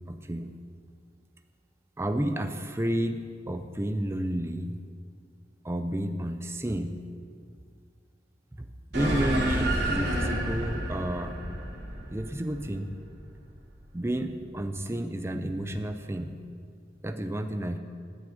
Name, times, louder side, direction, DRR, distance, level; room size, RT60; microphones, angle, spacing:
voice 1, 0.1-0.5 2.0-4.7 5.6-7.0 8.6-8.7 8.9-11.3 12.1-12.9 13.9-16.4 17.0-17.8, right 1 dB, 15° right, 7 dB, 0.5 m, -31 dB
sound 1, 8.9-13.7, right 1 dB, 65° right, 2.5 m, -30 dB
9.4 x 7.4 x 8.2 m, 2.2 s
head